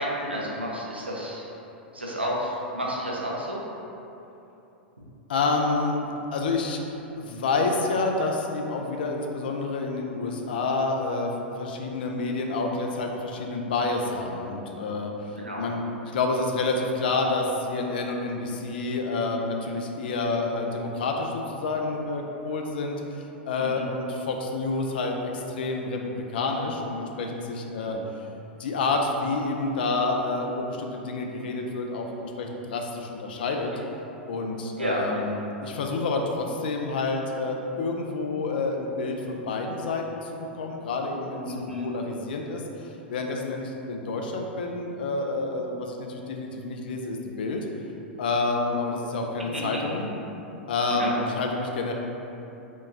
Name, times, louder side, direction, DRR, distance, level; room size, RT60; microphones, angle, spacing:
voice 1, 0.0-1.5 1.9-3.6 15.4-15.6 23.5-23.8 27.8-28.0 34.8-35.0 41.5-41.9 49.5-49.6 50.9-51.2, equal, 90° right, -4 dB, 0.6 m, -31 dB
voice 2, 5.3-6.0 6.3-6.8 7.2-15.8 16.1-28.0 28.6-33.7 34.3-47.7 48.2-50.1 50.7-51.9, left 3 dB, 60° left, 2 dB, 0.4 m, -28 dB
4.6 x 2.2 x 2.6 m, 2.9 s
figure-of-eight pair, 90°, 6 cm